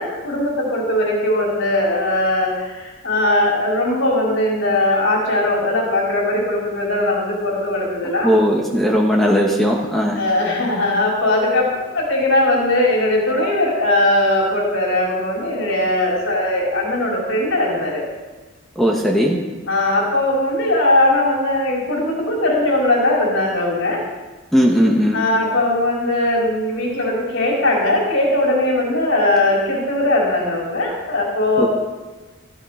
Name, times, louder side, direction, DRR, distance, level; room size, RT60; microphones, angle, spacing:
voice 1, 0.0-8.3 10.2-18.0 19.7-24.0 25.1-31.7, left 1 dB, 75° left, -3 dB, 4.5 m, -19 dB
voice 2, 8.2-10.2 18.8-19.4 24.5-25.2 31.6-31.7, equal, ahead, -1 dB, 1.2 m, -17 dB
15.5 x 12.5 x 5.0 m, 1.2 s
head